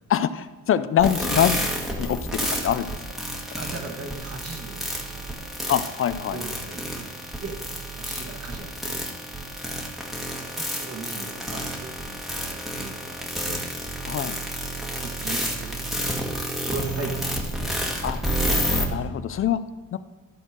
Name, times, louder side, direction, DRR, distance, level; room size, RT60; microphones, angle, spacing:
voice 1, 0.1-1.7 2.0-2.9 5.7-6.4 14.1-14.4 18.0-18.2 18.7-19.6 19.9-20.0, left 10 dB, 45° left, 12 dB, 0.4 m, -24 dB
sound 1, 1.0-18.8, equal, ahead, 1.6 m, -29 dB
voice 2, 3.5-5.5 6.3-7.1 7.4-7.6 7.9-9.0 10.4-13.6 15.0-16.2 16.6-18.1, right 3 dB, 50° right, 1 dB, 1.8 m, -38 dB
13.0 x 4.4 x 6.4 m, 1.3 s
cardioid pair, 90°, 30 cm